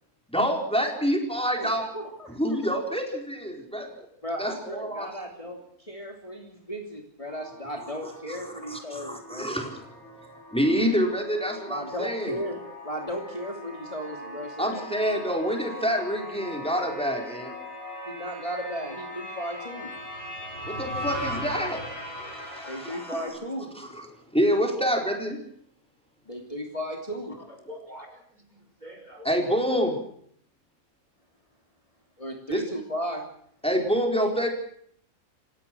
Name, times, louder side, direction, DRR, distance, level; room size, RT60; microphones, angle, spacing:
voice 1, 0.3-1.9 2.4-4.1 4.4-5.1 8.3-9.9 10.5-12.4 14.6-17.5 20.7-21.8 22.3-23.2 23.7-24.1 24.3-25.4 29.2-30.0 32.5-32.7 33.6-34.5, equal, 5° left, 2 dB, 4.5 m, -27 dB
voice 2, 1.6-2.3 4.2-9.5 11.7-14.9 18.1-19.9 22.7-23.7 26.3-27.4 32.2-33.2, equal, 25° left, 1 dB, 3.2 m, -35 dB
sound 1, 7.3-23.3, left 1 dB, 80° left, 8.4 m, -40 dB
voice 3, 27.5-28.2 28.5-29.3, left 1 dB, 30° right, 4 dB, 5.5 m, -45 dB
28.0 x 17.5 x 6.2 m, 0.64 s
omnidirectional pair, 1.5 m